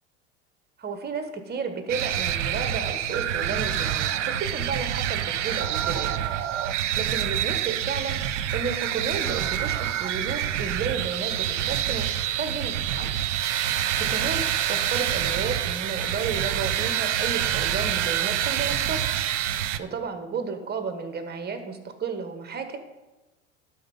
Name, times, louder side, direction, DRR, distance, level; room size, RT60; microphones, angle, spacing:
voice 1, 0.8-6.3 6.6-13.1 13.6-14.4 14.7-19.0 19.5-22.8, right 5 dB, 25° right, 7 dB, 1.3 m, -33 dB
sound 1, 1.9-19.8, right 10 dB, 80° right, 0.6 m, -27 dB
12.0 x 4.3 x 5.5 m, 1.1 s
hypercardioid pair, 90°, 36 cm